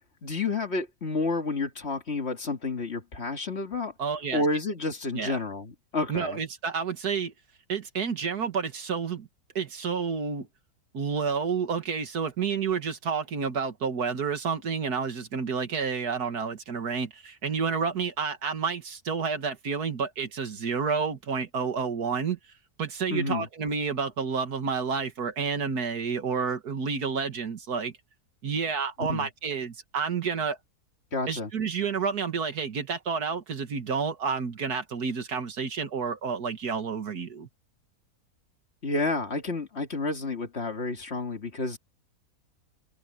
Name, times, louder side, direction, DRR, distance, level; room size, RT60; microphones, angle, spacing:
voice 1, 0.2-3.9 4.3-6.4 23.1-23.5 29.1-29.3 31.1-31.5 38.8-41.8, left 3 dB, 45° left, 2.4 m, -30 dB
voice 2, 4.0-4.4 5.1-5.4 6.1-7.3 7.7-9.3 9.6-10.5 10.9-22.4 22.8-27.9 28.4-30.6 31.3-37.5, right 5 dB, 80° right, 2.2 m, -30 dB
omnidirectional pair, 1.6 m